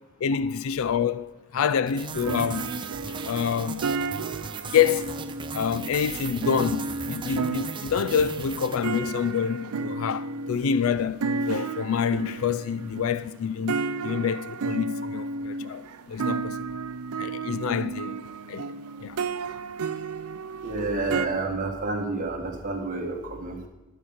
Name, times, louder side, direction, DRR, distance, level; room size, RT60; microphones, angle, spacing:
voice 1, 0.2-2.8 3.2-3.8 4.7-5.3 5.5-16.7 17.2-18.2 18.5-18.7 19.0-19.3, left 7 dB, 70° left, 0.4 m, -27 dB
sound 1, 1.9-9.4, right 5 dB, 20° right, 0.5 m, -37 dB
sound 2, 2.1-21.3, right 4 dB, 85° right, 0.5 m, -33 dB
voice 2, 20.6-23.7, right 3 dB, 35° right, 1.7 m, -29 dB
12.5 x 5.6 x 7.2 m
head